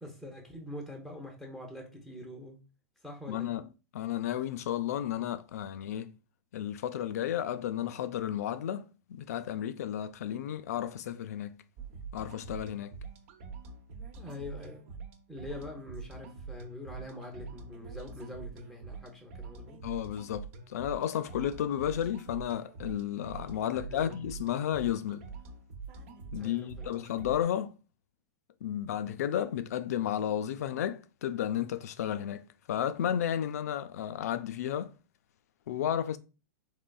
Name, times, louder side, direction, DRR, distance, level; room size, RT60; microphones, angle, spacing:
voice 1, 0.0-2.6 3.0-3.5 14.2-14.9 15.3-19.8 23.7-24.2 26.3-27.1, left 1 dB, ahead, 0.7 m, -44 dB
voice 2, 3.3-3.7 3.9-6.1 6.5-11.6 12.1-12.9 19.8-25.3 26.3-27.8 28.6-34.9 35.7-36.2, left 10 dB, 75° left, 0.4 m, -33 dB
sound 1, 11.8-27.4, right 4 dB, 60° right, 0.8 m, -45 dB
3.8 x 3.0 x 2.3 m
hypercardioid pair, 125°, 9 cm